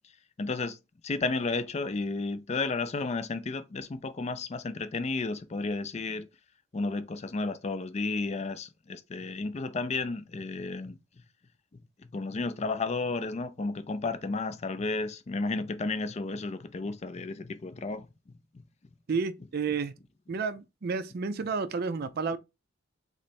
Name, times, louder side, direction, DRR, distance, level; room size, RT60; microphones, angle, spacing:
voice 1, 0.4-0.8 1.0-6.3 6.7-11.0 12.0-18.1, left 3 dB, 35° left, 0.4 m, -32 dB
voice 2, 19.1-19.9 20.3-22.4, right 5 dB, 50° right, 0.4 m, -31 dB
3.2 x 3.1 x 4.1 m
head